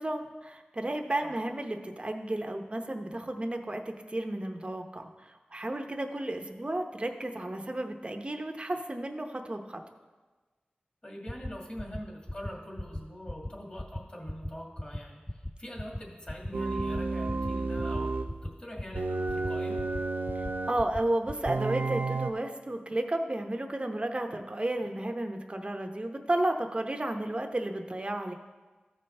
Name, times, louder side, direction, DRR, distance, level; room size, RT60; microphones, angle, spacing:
voice 1, 0.0-9.8 20.7-28.3, right 1 dB, 35° right, 5 dB, 0.8 m, -32 dB
voice 2, 11.0-18.2 18.4-19.9, equal, 30° left, -2 dB, 2.1 m, -43 dB
sound 1, 11.3-11.5 11.8-12.0 12.3-12.5 12.8-13.0 13.3-13.5 13.8-14.0 14.3-14.5 14.8-15.0 15.3-15.5 15.8-16.0 16.3-16.5 16.8-17.0 17.3-17.5 17.8-18.0 18.3-18.5 18.8-19.0 19.3-19.5 19.8-20.0 20.3-20.5 20.8-21.0 21.3-21.5, left 1 dB, 10° left, 0.3 m, -36 dB
sound 2, 16.5-18.3 18.9-20.8 21.5-22.3, right 3 dB, 80° right, 0.5 m, -31 dB
14.0 x 5.5 x 3.3 m, 1.3 s
wide cardioid pair, 65°, 3 cm